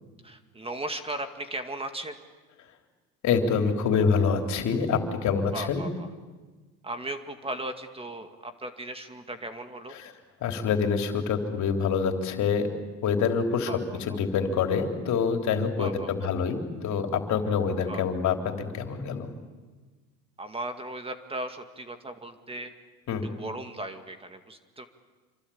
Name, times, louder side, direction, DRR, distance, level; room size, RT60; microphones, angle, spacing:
voice 1, 0.2-2.2 5.5-6.1 6.8-10.0 13.7-14.2 15.8-16.3 17.9-18.0 20.4-22.7 23.2-24.9, right 1 dB, 15° right, 7 dB, 2.1 m, -37 dB
voice 2, 3.2-5.8 10.4-12.7 13.0-13.7 14.1-19.3 23.1-23.3, left 6 dB, 60° left, 4 dB, 3.7 m, -26 dB
27.0 x 24.5 x 8.7 m, 1.3 s
supercardioid pair, 100°, 32 cm